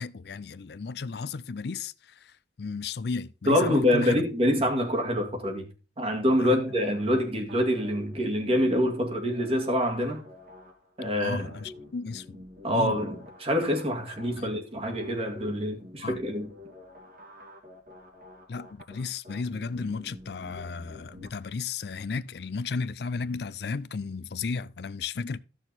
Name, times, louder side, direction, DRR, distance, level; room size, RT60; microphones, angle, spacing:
voice 1, 0.0-4.2 6.4-6.6 11.2-12.4 12.7-13.0 14.4-14.5 16.0-16.2 18.5-25.4, left 4 dB, 60° left, 0.4 m, -34 dB
voice 2, 3.5-5.7 6.0-10.2 11.0-11.5 12.6-16.5, equal, 30° right, 2.1 m, -26 dB
sound 1, 6.5-21.3, left 1 dB, 50° right, 2.7 m, -49 dB
14.5 x 6.3 x 4.0 m
head